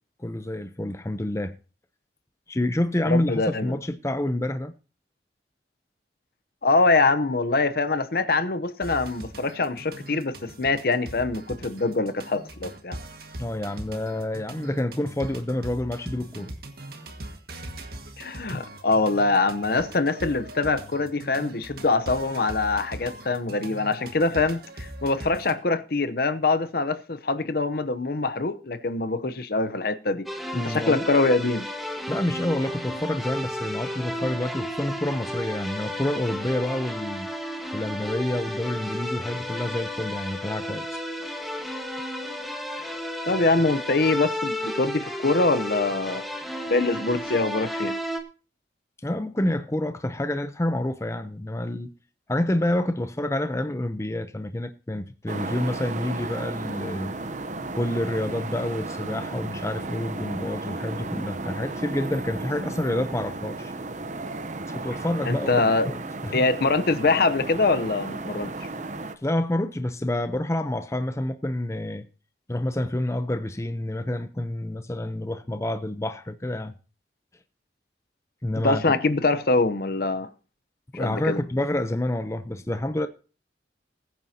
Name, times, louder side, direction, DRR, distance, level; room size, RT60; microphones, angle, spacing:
voice 1, 0.2-1.5 2.5-4.7 13.4-16.5 30.5-31.1 32.1-37.3 37.7-41.0 49.0-51.9 52.3-57.1 57.7-63.7 64.7-66.4 69.2-72.0 72.5-76.7 78.4-79.0 80.9-83.1, left 1 dB, 15° left, 0.7 m, -28 dB
voice 2, 3.0-3.8 6.6-13.0 18.2-30.3 30.6-31.7 43.3-46.2 46.7-48.0 65.2-65.9 66.3-68.7 78.6-80.3 80.9-81.4, left 3 dB, 55° left, 0.8 m, -24 dB
sound 1, 8.8-25.5, right 1 dB, 60° right, 1.9 m, -40 dB
sound 2, 30.3-48.2, equal, ahead, 1.5 m, -33 dB
sound 3, 55.3-69.2, right 2 dB, 45° right, 0.8 m, -34 dB
20.5 x 9.4 x 2.8 m
head